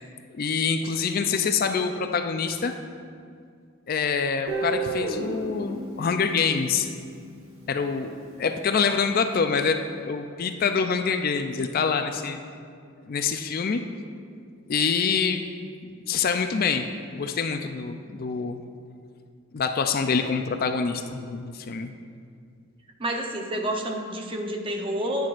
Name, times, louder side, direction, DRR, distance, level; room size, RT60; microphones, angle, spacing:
voice 1, 0.3-2.7 3.9-6.9 7.7-12.4 13.1-13.8 14.7-15.4 16.1-16.9 17.1-18.6 19.5-21.9, left 5 dB, 45° left, 7 dB, 0.4 m, -26 dB
Guitar, 4.5-7.4, right 3 dB, 85° right, 1.6 m, -32 dB
voice 2, 23.0-25.3, right 1 dB, 25° right, 2 dB, 0.7 m, -29 dB
10.5 x 9.5 x 2.5 m, 2.2 s
head